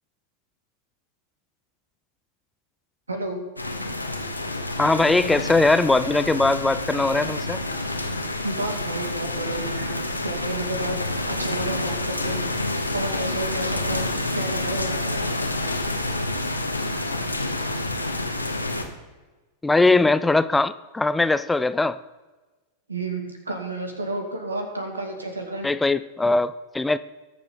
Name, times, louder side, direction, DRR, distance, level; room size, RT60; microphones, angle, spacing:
voice 1, 3.1-3.4 8.4-12.4 12.9-14.1 14.3-15.3 22.9-25.7, right 2 dB, 75° right, 4 dB, 2.1 m, -31 dB
sound 1, 3.6-18.8, left 2 dB, 85° left, 1.2 m, -28 dB
voice 2, 4.8-7.6 19.6-22.0 25.6-27.0, left 2 dB, 10° left, 14 dB, 0.4 m, -20 dB
20.0 x 7.0 x 3.8 m, 1.2 s
figure-of-eight pair, 90°, 0 cm